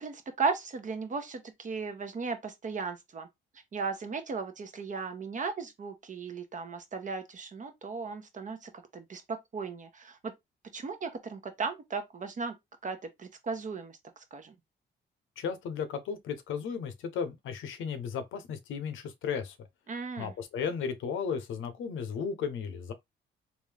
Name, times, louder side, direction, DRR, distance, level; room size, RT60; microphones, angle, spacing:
voice 1, 0.0-3.3 3.7-10.3 10.7-12.5 12.8-14.0 14.3-14.5 19.9-20.3, right 4 dB, 40° right, 0.9 m, -36 dB
voice 2, 15.4-19.6 20.2-22.9, left 6 dB, 80° left, 0.8 m, -35 dB
3.5 x 2.6 x 3.3 m
cardioid pair, 90°, 20 cm